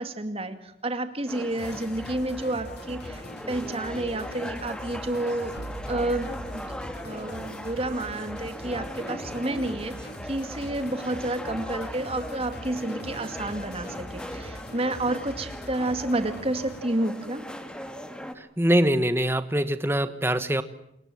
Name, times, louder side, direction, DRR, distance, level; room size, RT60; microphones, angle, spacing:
voice 1, 0.0-5.5 5.9-6.7 7.0-17.4, right 1 dB, 30° right, 8 dB, 2.3 m, -30 dB
sound 1, 1.3-18.3, equal, 5° left, 2.0 m, -39 dB
sound 2, 1.6-16.8, left 1 dB, 60° left, 2.7 m, -43 dB
sound 3, 5.6-7.7, right 1 dB, 85° right, 1.1 m, -41 dB
voice 2, 18.4-20.6, right 1 dB, 10° right, 12 dB, 1.3 m, -23 dB
27.5 x 23.0 x 7.8 m, 0.78 s
head